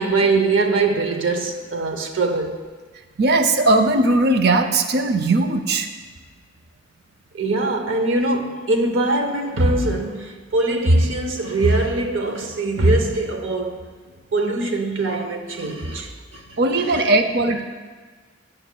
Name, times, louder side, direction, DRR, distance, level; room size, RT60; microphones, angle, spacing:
voice 1, 0.0-2.5 7.3-13.8 14.3-16.4 16.8-17.1, right 2 dB, 90° right, 0.8 m, -21 dB
voice 2, 3.2-5.9 16.6-17.6, right 2 dB, 55° right, 0.5 m, -18 dB
17.0 x 5.8 x 2.3 m
head